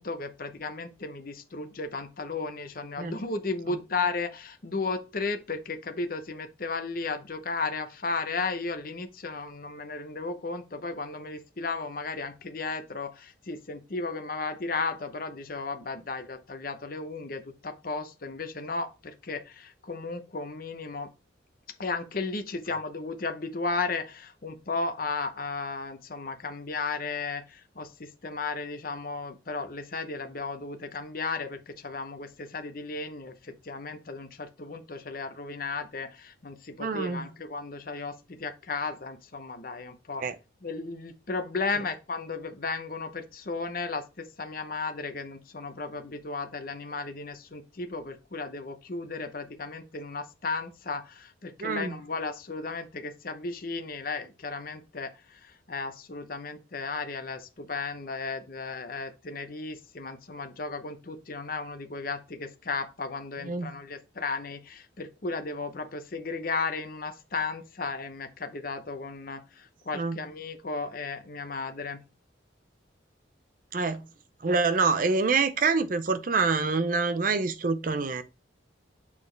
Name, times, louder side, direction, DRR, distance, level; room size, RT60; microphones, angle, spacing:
voice 1, 0.0-21.1 21.8-40.2 40.6-72.0, left 3 dB, 50° left, 0.8 m, -34 dB
voice 2, 36.8-37.3 40.2-40.4 51.6-52.0 63.5-63.7 69.9-70.2 73.7-74.0 74.4-78.2, right 4 dB, 45° right, 0.5 m, -26 dB
7.2 x 4.1 x 3.2 m
head